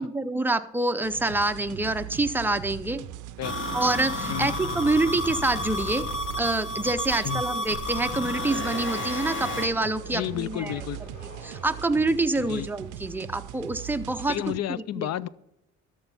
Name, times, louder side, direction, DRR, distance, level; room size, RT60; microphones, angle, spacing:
voice 1, 0.0-3.0 3.7-6.1 6.4-10.8 11.4-14.3 14.7-15.3, right 2 dB, 5° right, 8 dB, 0.5 m, -26 dB
sound 1, 1.0-14.6, right 13 dB, 80° right, 0.5 m, -40 dB
sound 2, 3.4-12.2, left 1 dB, 75° left, 3.2 m, -48 dB
sound 3, 3.4-9.7, left 1 dB, 40° left, 1.2 m, -31 dB
voice 2, 7.1-7.4 10.1-11.0 12.5-12.7 14.3-15.3, left 12 dB, 60° left, 20 dB, 0.4 m, -31 dB
13.0 x 4.5 x 5.7 m, 0.83 s
cardioid pair, 90°, 30 cm